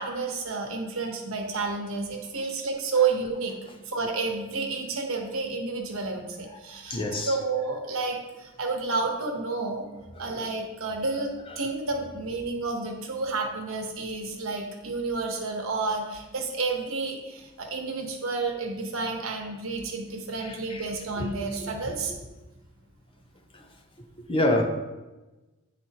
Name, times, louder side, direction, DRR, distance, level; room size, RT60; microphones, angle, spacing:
voice 1, 0.0-3.6 3.9-9.9 10.2-22.1, right 4 dB, 65° right, 1.0 m, -30 dB
voice 2, 6.7-7.4 10.1-10.4 11.5-11.6 20.4-20.9 21.2-21.4 21.8-21.9 23.5-23.7 24.3-24.7, left 1 dB, 25° left, 0.5 m, -28 dB
9.4 x 3.8 x 2.9 m
head